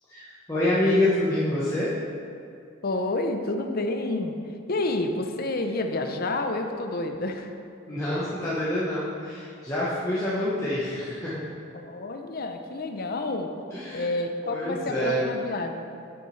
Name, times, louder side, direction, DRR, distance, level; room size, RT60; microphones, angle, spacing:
voice 1, 0.1-1.9 7.9-11.5 13.7-14.1 14.5-15.2, left 1 dB, 15° left, -10 dB, 0.9 m, -26 dB
voice 2, 2.8-4.3 4.7-7.5 11.7-13.5 13.9-15.7, left 2 dB, 45° left, 5 dB, 0.6 m, -29 dB
9.2 x 7.0 x 3.2 m, 2.5 s
head